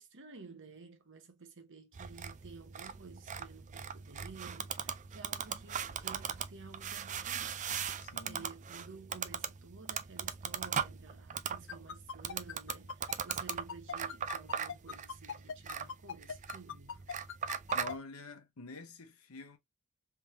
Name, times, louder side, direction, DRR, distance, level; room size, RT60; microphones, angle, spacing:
voice 1, 0.0-7.6 8.2-16.9, right 4 dB, 55° right, 1.0 m, -53 dB
sound 1, 1.9-17.9, right 8 dB, 35° right, 0.4 m, -39 dB
voice 2, 8.0-8.5 17.7-19.6, left 3 dB, 75° left, 1.0 m, -47 dB
sound 2, 11.7-17.9, left 7 dB, 60° left, 0.5 m, -40 dB
3.6 x 3.4 x 3.0 m
head